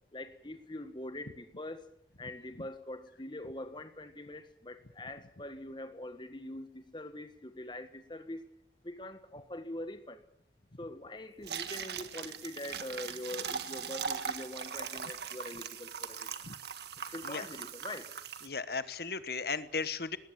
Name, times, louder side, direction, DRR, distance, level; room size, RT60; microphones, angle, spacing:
voice 1, 0.1-1.8 2.2-8.4 8.8-10.2 10.8-16.3 17.1-18.1, left 1 dB, 25° left, 9 dB, 1.7 m, -43 dB
sound 1, 11.4-18.5, right 7 dB, 70° right, 1.6 m, -40 dB
voice 2, 18.4-20.2, left 4 dB, 60° left, 13 dB, 1.3 m, -36 dB
19.5 x 17.5 x 9.2 m, 0.72 s
head